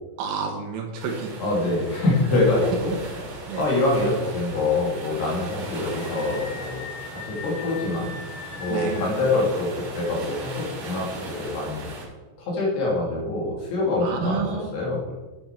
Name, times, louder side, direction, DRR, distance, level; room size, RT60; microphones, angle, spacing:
voice 1, 0.2-1.3 3.5-3.6 8.7-9.0 14.0-14.7, right 5 dB, 70° right, 2 dB, 3.3 m, -29 dB
sound 1, 1.0-12.0, right 1 dB, 45° right, 4.1 m, -37 dB
voice 2, 1.4-2.9 3.5-6.9 7.3-8.1 8.6-9.7 9.9-11.1 11.4-11.9 12.4-14.5 14.7-15.1, left 2 dB, 60° left, -3 dB, 4.2 m, -24 dB
Screaming, 5.8-9.2, left 6 dB, 80° left, 1.9 m, -40 dB
10.5 x 7.9 x 4.5 m, 1.2 s
omnidirectional pair, 5.6 m